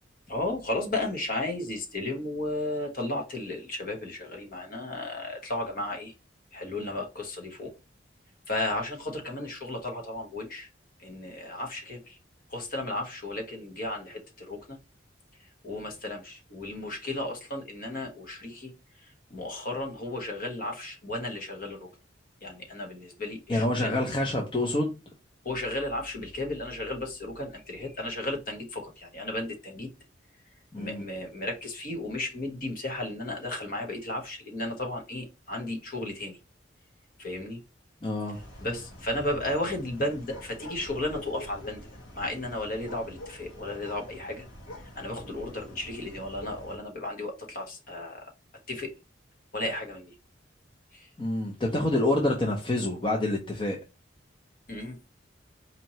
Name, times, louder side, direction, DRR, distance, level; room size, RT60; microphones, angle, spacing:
voice 1, 0.3-6.1 6.5-7.7 8.5-10.7 11.0-12.2 12.5-14.8 15.6-18.7 19.0-21.9 22.4-24.0 25.4-29.9 30.8-36.4 37.2-37.6 38.6-41.9 42.2-44.5 44.9-48.3 48.7-48.9 49.5-50.1 50.9-51.1 54.7-55.0, left 1 dB, 45° left, 1.0 m, -34 dB
voice 2, 23.5-24.9 30.7-31.0 38.0-38.4 51.2-53.8, left 1 dB, 25° left, 0.5 m, -27 dB
sound 1, 38.3-46.8, equal, 85° left, 1.3 m, -45 dB
4.3 x 2.7 x 3.0 m
head